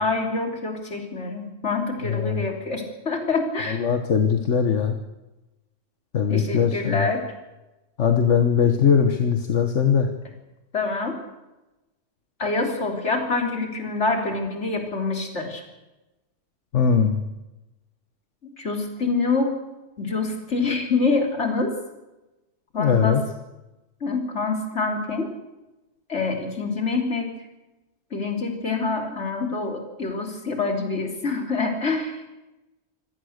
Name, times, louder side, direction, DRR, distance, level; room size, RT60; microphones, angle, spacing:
voice 1, 0.0-3.8 6.3-7.2 10.7-11.2 12.4-15.6 18.4-19.5 20.0-21.7 22.7-23.2 24.0-25.3 26.1-27.3 28.1-32.3, left 3 dB, 75° left, 3 dB, 3.7 m, -26 dB
voice 2, 2.1-2.5 3.7-5.0 6.1-7.1 8.0-10.1 16.7-17.2 22.8-23.2, left 7 dB, 90° left, 6 dB, 1.6 m, -20 dB
25.5 x 17.5 x 6.6 m, 1.0 s
omnidirectional pair, 1.2 m